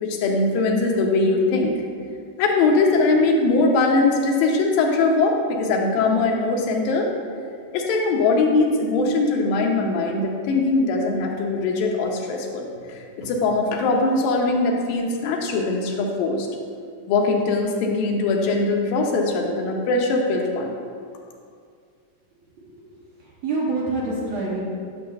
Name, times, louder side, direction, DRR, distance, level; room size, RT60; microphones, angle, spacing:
voice 1, 0.0-1.7 2.4-7.1 7.7-12.7 13.2-16.5 17.1-20.7, left 3 dB, 85° left, 1 dB, 2.5 m, -21 dB
voice 2, 23.2-24.6, right 3 dB, 70° right, -4 dB, 1.9 m, -27 dB
9.9 x 6.6 x 2.3 m, 2.2 s
omnidirectional pair, 3.9 m